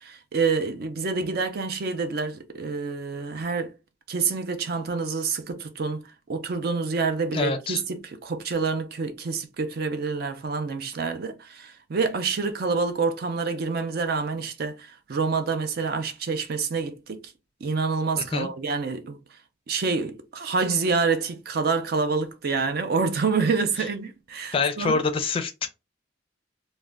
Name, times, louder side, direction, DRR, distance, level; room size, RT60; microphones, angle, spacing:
voice 1, 0.0-3.7 4.1-17.2 17.6-19.2 19.7-25.0, right 4 dB, 50° right, 0.4 m, -27 dB
voice 2, 7.3-7.8 18.2-18.5 24.5-25.7, left 4 dB, 30° left, 0.4 m, -26 dB
2.4 x 2.1 x 3.2 m
head